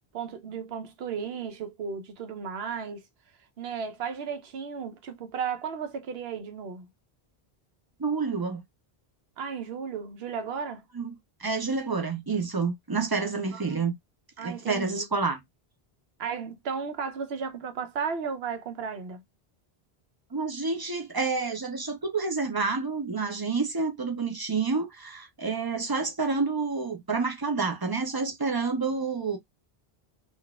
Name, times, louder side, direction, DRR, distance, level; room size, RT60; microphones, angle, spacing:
voice 1, 0.1-3.0 3.6-6.9 9.4-10.8 13.5-13.9 14.4-15.1 16.2-19.2, right 6 dB, 80° right, 0.9 m, -34 dB
voice 2, 8.0-8.6 10.9-11.1 11.4-13.9 14.4-15.4 20.3-29.4, right 4 dB, 30° right, 0.5 m, -29 dB
3.8 x 2.4 x 2.2 m
omnidirectional pair, 1.0 m